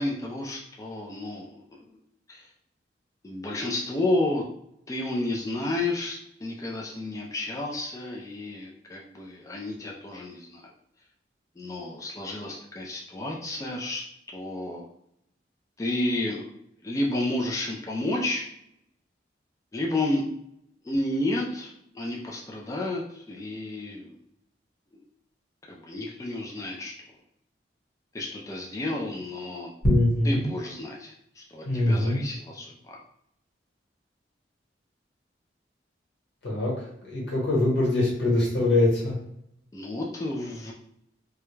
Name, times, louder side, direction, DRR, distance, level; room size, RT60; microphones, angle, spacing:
voice 1, 0.0-2.0 2.3-2.5 3.2-4.4 4.9-10.7 11.6-14.0 14.3-14.8 15.8-16.5 16.8-18.5 19.7-20.2 20.8-24.2 25.7-26.9 28.1-29.7 30.2-33.0 39.7-40.7, left 1 dB, 20° left, -2 dB, 0.3 m, -31 dB
voice 2, 29.8-30.5 31.6-32.2 36.4-36.7 37.1-39.1, left 1 dB, 90° left, -4 dB, 1.2 m, -23 dB
2.3 x 2.1 x 3.1 m, 0.74 s
head